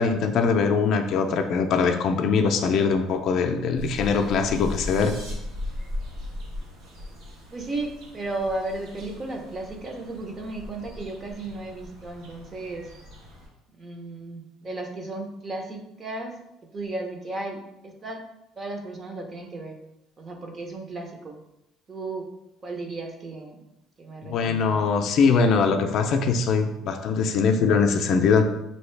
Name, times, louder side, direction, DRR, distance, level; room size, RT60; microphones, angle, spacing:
voice 1, 0.0-5.1 24.3-28.4, left 5 dB, 55° left, 5 dB, 0.4 m, -22 dB
sound 1, 3.7-13.5, left 1 dB, 75° right, 1.2 m, -38 dB
sound 2, 4.3-5.3, right 2 dB, 45° right, 1.1 m, -46 dB
voice 2, 7.5-12.9 13.7-16.4 16.7-18.2 18.6-19.8 20.2-21.4 21.9-22.3 22.6-23.6 24.0-24.8, right 2 dB, 25° right, 3 dB, 0.7 m, -34 dB
5.3 x 2.8 x 3.2 m, 0.87 s
cardioid pair, 135°, 0 cm